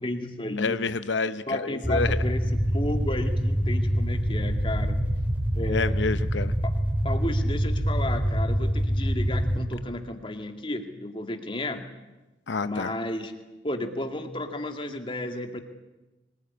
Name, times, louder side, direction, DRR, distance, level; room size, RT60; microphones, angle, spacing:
voice 1, 0.0-0.8 1.5-5.0 5.5-6.0 6.6-6.8 7.0-11.9 12.6-15.6, left 1 dB, 30° left, 5 dB, 2.2 m, -33 dB
voice 2, 0.6-2.2 5.7-6.5 12.5-12.9, left 4 dB, 85° left, 12 dB, 0.8 m, -28 dB
sound 1, 1.8-9.6, equal, 10° right, 3.2 m, -25 dB
24.5 x 19.5 x 9.8 m, 1.1 s
head